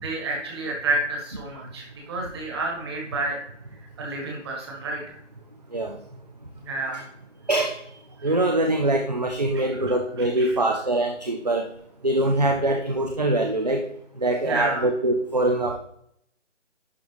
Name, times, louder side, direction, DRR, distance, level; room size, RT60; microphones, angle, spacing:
voice 1, 0.0-3.4 3.8-5.2 6.6-7.1 8.2-8.3 9.5-9.6 10.2-10.6 14.4-14.8, right 2 dB, 20° right, -1 dB, 1.5 m, -30 dB
voice 2, 7.5-7.8 8.2-11.7 12.0-13.8 14.2-15.8, right 1 dB, 35° right, 4 dB, 0.4 m, -23 dB
11.0 x 3.9 x 3.2 m, 0.72 s
hypercardioid pair, 165°, 37 cm